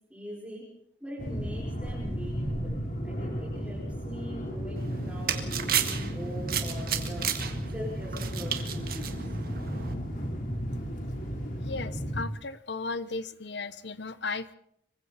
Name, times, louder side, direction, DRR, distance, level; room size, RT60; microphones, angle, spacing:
voice 1, 0.1-0.7 1.0-7.3 7.7-9.4, equal, 5° right, -6 dB, 5.3 m, -43 dB
sound 1, 1.2-12.2, equal, 45° left, 3.9 m, -34 dB
sound 2, 4.8-9.9, right 9 dB, 55° right, 1.9 m, -33 dB
voice 2, 11.6-14.5, left 3 dB, 75° left, 14 dB, 1.1 m, -35 dB
26.5 x 24.0 x 4.3 m, 0.72 s
head